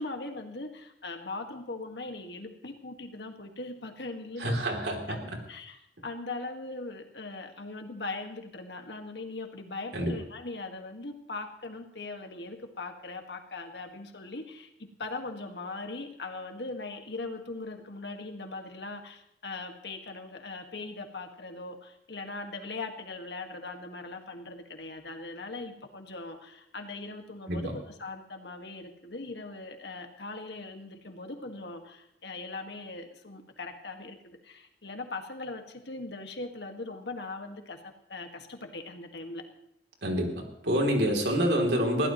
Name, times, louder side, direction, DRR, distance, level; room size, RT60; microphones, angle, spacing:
voice 1, 0.0-39.4, left 3 dB, 75° left, 4 dB, 1.8 m, -40 dB
voice 2, 4.4-5.4 9.9-10.1 27.5-27.7 40.0-40.3 40.6-42.1, equal, 80° right, 1 dB, 3.1 m, -27 dB
21.5 x 15.0 x 3.1 m, 0.77 s
head